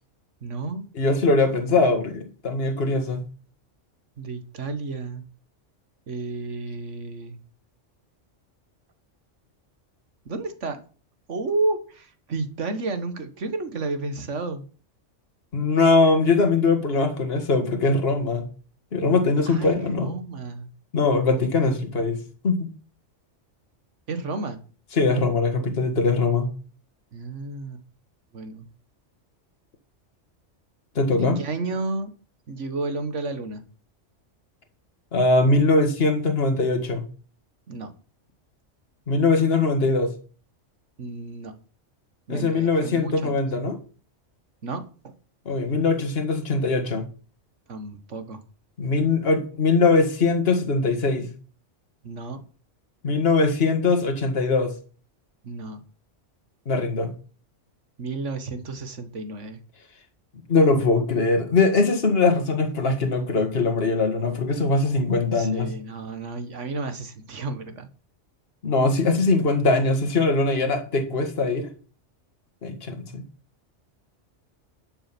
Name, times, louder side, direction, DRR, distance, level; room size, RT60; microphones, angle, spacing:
voice 1, 0.4-0.9 4.2-5.3 6.1-7.4 10.3-10.8 11.3-14.7 19.5-20.7 24.1-24.6 27.1-27.8 28.3-28.7 31.2-32.1 32.5-33.6 37.7-37.9 41.0-41.6 42.3-43.4 44.6-45.1 47.7-48.4 52.0-52.4 55.4-55.8 58.0-59.6 65.3-67.9, right 3 dB, 75° right, 1.8 m, -31 dB
voice 2, 1.0-3.2 15.5-18.5 18.9-20.1 20.9-22.2 22.4-22.7 25.0-26.5 31.0-31.4 35.1-37.0 39.1-40.1 42.3-43.8 45.5-47.1 48.8-51.3 53.0-54.7 56.7-57.1 60.5-65.7 68.6-71.7 72.6-73.2, left 3 dB, 55° left, 1.9 m, -21 dB
11.5 x 6.7 x 6.0 m
omnidirectional pair, 1.3 m